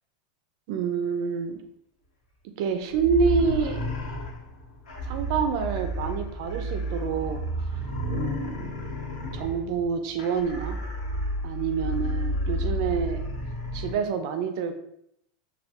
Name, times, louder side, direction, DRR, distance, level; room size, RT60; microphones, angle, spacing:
voice 1, 0.7-1.6 2.6-3.8 5.1-7.4 8.1-8.7 9.3-10.8 11.4-13.2 13.7-14.7, right 6 dB, 45° right, 7 dB, 0.4 m, -27 dB
sound 1, 2.9-13.9, equal, 85° left, 1.0 m, -31 dB
3.2 x 2.2 x 2.8 m, 0.74 s
supercardioid pair, 175°, 3 cm